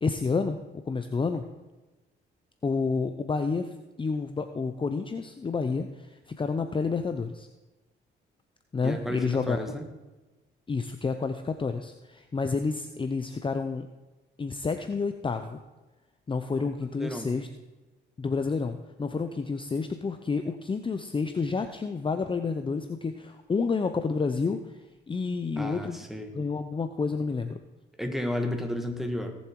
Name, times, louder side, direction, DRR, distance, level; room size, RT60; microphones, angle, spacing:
voice 1, 0.0-1.4 2.6-7.5 8.7-9.7 10.7-13.9 14.4-15.6 16.3-17.5 18.2-24.8 25.1-26.0 26.3-27.6, left 4 dB, 25° left, 8 dB, 0.7 m, -29 dB
voice 2, 8.8-9.9 16.9-17.3 25.6-26.3 28.0-29.4, left 1 dB, ahead, 4 dB, 1.9 m, -32 dB
18.0 x 7.2 x 4.7 m, 1.1 s
cardioid pair, 90°, 20 cm